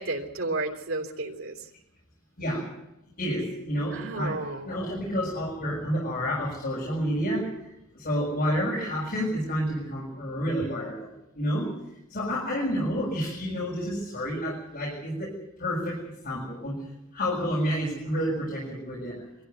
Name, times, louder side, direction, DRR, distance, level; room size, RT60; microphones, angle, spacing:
voice 1, 0.0-1.6 3.9-4.7, right 2 dB, 70° right, 1 dB, 3.4 m, -32 dB
voice 2, 2.4-2.7 3.2-7.5 7.9-11.1 11.3-11.7 12.1-15.3 15.6-16.8 17.1-19.2, equal, 45° left, -4 dB, 6.9 m, -29 dB
23.5 x 14.5 x 9.4 m, 0.86 s
head